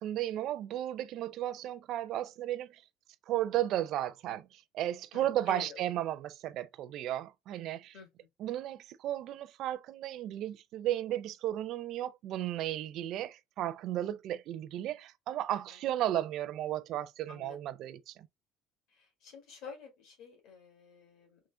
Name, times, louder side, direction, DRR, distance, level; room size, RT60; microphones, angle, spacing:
voice 1, 0.0-2.8 3.3-8.0 8.4-18.3, right 12 dB, 45° right, 0.4 m, -34 dB
voice 2, 5.1-5.8 7.9-8.1 17.3-17.6 18.9-21.4, left 6 dB, 60° left, 1.8 m, -49 dB
3.7 x 3.1 x 3.3 m
cardioid pair, 180°, 0 cm